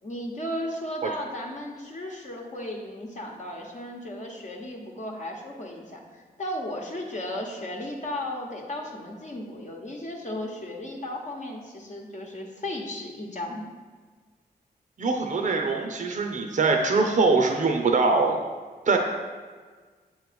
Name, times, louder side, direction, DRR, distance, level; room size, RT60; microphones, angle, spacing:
voice 1, 0.0-13.6, left 1 dB, 45° left, -1 dB, 1.0 m, -35 dB
voice 2, 15.0-18.4 18.9-19.0, right 3 dB, 50° right, 3 dB, 0.7 m, -23 dB
7.4 x 3.1 x 5.1 m, 1.5 s
cardioid pair, 65°, 17 cm